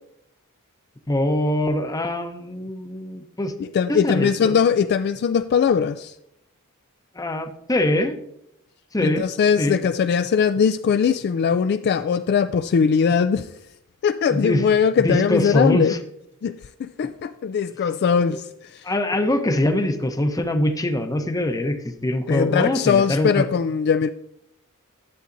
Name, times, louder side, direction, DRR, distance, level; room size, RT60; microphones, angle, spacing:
voice 1, 1.1-3.5 3.9-4.5 7.1-8.2 8.9-9.2 9.6-9.8 14.3-14.7 15.0-16.0 18.3-18.4 18.8-23.5, left 1 dB, 15° left, 0.7 m, -23 dB
voice 2, 3.7-6.1 9.0-13.5 14.0-15.9 16.4-18.8 22.3-24.1, left 6 dB, 50° left, 0.3 m, -20 dB
11.0 x 7.7 x 2.6 m
head